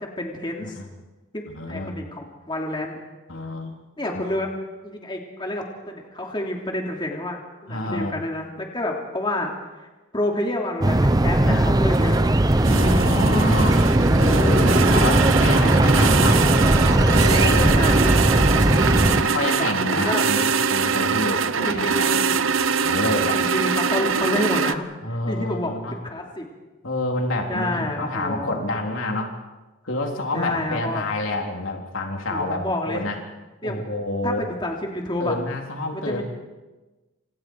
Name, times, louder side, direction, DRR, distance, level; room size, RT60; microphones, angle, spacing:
voice 1, 0.2-0.7 1.3-3.0 4.0-4.5 4.8-9.5 10.1-12.2 14.8-15.3 17.5-18.1 19.5-20.2 21.6-22.4 23.3-24.9 25.3-25.7 26.0-26.5 27.5-28.5 30.3-31.0 32.3-33.1 33.6-33.8 34.2-35.4 35.9-36.2, left 1 dB, 25° left, 0 dB, 3.1 m, -29 dB
voice 2, 1.5-2.0 3.3-3.8 4.1-4.4 7.7-8.2 11.4-11.7 12.7-16.5 17.1-17.9 18.5-22.2 22.8-23.4 25.0-26.0 26.8-29.3 29.8-33.2 33.6-34.5 35.2-36.2, left 1 dB, 80° left, 1 dB, 3.7 m, -28 dB
sound 1, 10.8-19.2, right 1 dB, 20° right, 0.7 m, -18 dB
sound 2, 11.9-24.8, right 5 dB, 80° right, 0.9 m, -23 dB
28.5 x 27.5 x 4.8 m, 1.2 s
head